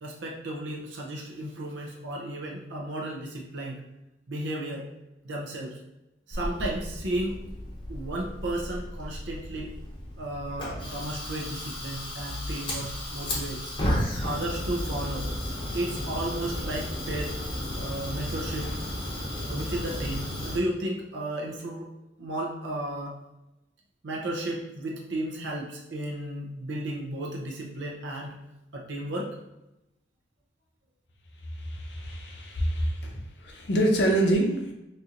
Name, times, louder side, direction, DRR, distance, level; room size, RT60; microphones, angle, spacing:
voice 1, 0.0-3.8 4.3-4.9 5.2-5.8 6.3-7.4 7.9-9.7 10.2-13.7 14.2-15.3 15.7-17.3 17.8-18.7 19.5-21.9 22.2-23.2 24.0-28.4 28.7-29.4, right 1 dB, 75° right, -1 dB, 0.6 m, -34 dB
Fire, 6.3-20.6, left 1 dB, 25° left, 0.7 m, -33 dB
voice 2, 31.5-34.7, right 1 dB, 65° left, 0 dB, 0.7 m, -26 dB
4.2 x 2.7 x 2.4 m, 0.94 s
head